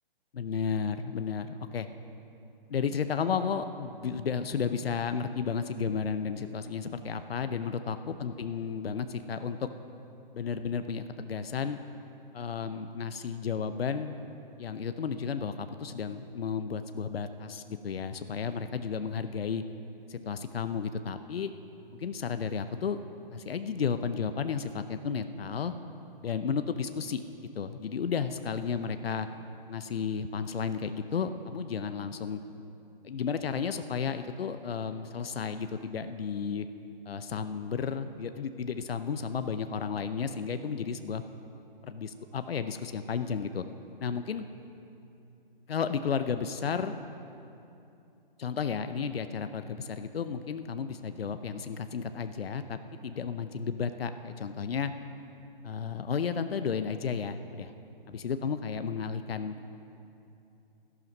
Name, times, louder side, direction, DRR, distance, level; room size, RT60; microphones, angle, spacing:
voice 1, 0.3-1.9 2.7-9.7 10.3-11.8 12.3-14.1 14.6-19.6 20.1-21.5 21.9-23.0 23.3-25.7 26.2-27.2 27.5-29.3 29.7-32.4 33.0-36.7 37.1-41.2 41.8-43.6 44.0-44.4 45.7-46.9 48.4-54.9 55.6-57.7 58.1-59.6, left 6 dB, 85° left, 10 dB, 0.7 m, -33 dB
13.5 x 11.0 x 5.4 m, 2.8 s
hypercardioid pair, 165°, 29 cm